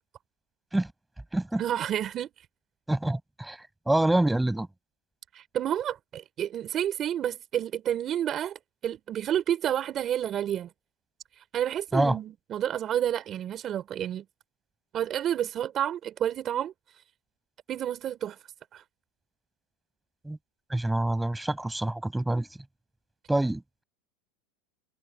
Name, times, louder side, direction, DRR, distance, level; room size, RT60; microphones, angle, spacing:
voice 1, 1.6-2.3 5.3-10.7 11.4-14.2 14.9-16.7 17.7-18.4 18.7-18.8, right 10 dB, 35° right, 4.1 m, -30 dB
voice 2, 2.9-3.6 3.9-4.7 11.9-12.2 20.2-20.4 20.7-22.5 23.3-23.8, right 1 dB, 5° right, 5.9 m, -26 dB
supercardioid pair, 135°, 0 cm